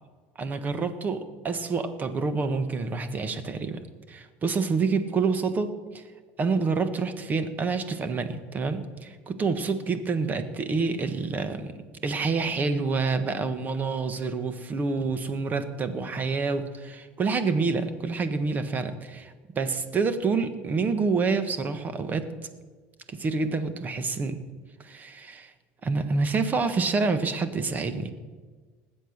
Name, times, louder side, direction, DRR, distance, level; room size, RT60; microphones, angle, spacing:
voice 1, 0.4-3.8 4.1-6.0 6.4-11.7 12.0-22.3 23.1-24.4 24.8-25.5 25.8-28.1, right 4 dB, 30° right, 11 dB, 1.4 m, -27 dB
19.5 x 7.8 x 6.6 m, 1.4 s
supercardioid pair, 120°, 6 cm